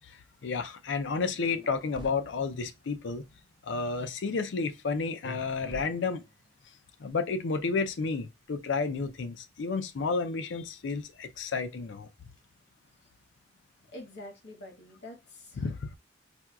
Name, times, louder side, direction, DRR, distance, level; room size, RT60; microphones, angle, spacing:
voice 1, 0.1-3.2 3.6-6.2 7.0-12.1 15.6-15.9, left 4 dB, 80° left, 0.5 m, -31 dB
sound 1, 1.5-2.1 5.2-6.4, right 1 dB, 25° right, 0.4 m, -45 dB
voice 2, 13.9-15.7, left 1 dB, 60° left, 1.2 m, -46 dB
4.3 x 2.3 x 2.3 m
head